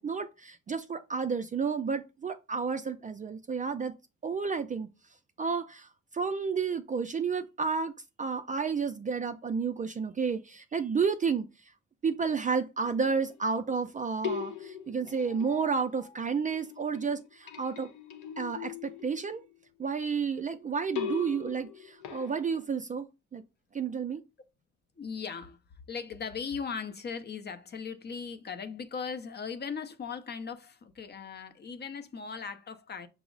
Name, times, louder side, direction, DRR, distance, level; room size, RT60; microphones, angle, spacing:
voice 1, 0.0-3.9 4.2-4.9 5.4-7.9 8.2-11.7 12.0-17.9 18.4-19.4 19.8-23.4 23.7-24.2, right 5 dB, 25° right, 0.3 m, -31 dB
sound 1, 12.9-13.8 14.2-16.2 16.5-19.5 21.0-22.6, left 8 dB, 80° left, 0.7 m, -40 dB
voice 2, 25.0-25.6 25.9-33.1, left 6 dB, 35° left, 0.5 m, -38 dB
5.8 x 2.0 x 3.7 m
cardioid pair, 90°, 30 cm